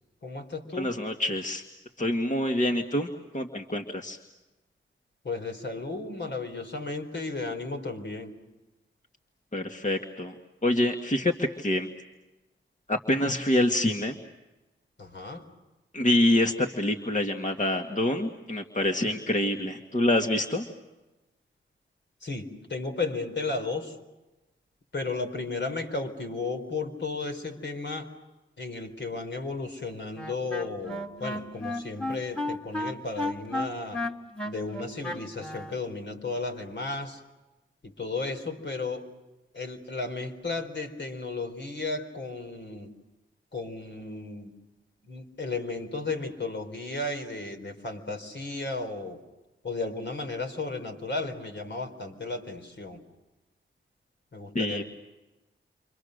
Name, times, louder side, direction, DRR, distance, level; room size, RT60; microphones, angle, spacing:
voice 1, 0.2-0.9 5.2-8.3 15.0-15.5 22.2-24.0 24.9-28.1 28.6-34.1 34.4-37.2 37.8-39.1 39.5-42.9 43.5-44.5 45.0-49.2 49.6-53.0 54.3-54.8, left 3 dB, 60° left, 6 dB, 4.4 m, -34 dB
voice 2, 0.8-1.6 2.0-4.2 9.5-10.3 10.6-11.9 12.9-14.2 15.9-20.7 54.5-54.8, left 1 dB, 35° left, 3 dB, 2.0 m, -26 dB
Wind instrument woodwind instrument, 30.2-35.8, left 1 dB, 5° left, 2.2 m, -33 dB
30.0 x 26.0 x 6.7 m, 1.1 s
cardioid pair, 55°, 21 cm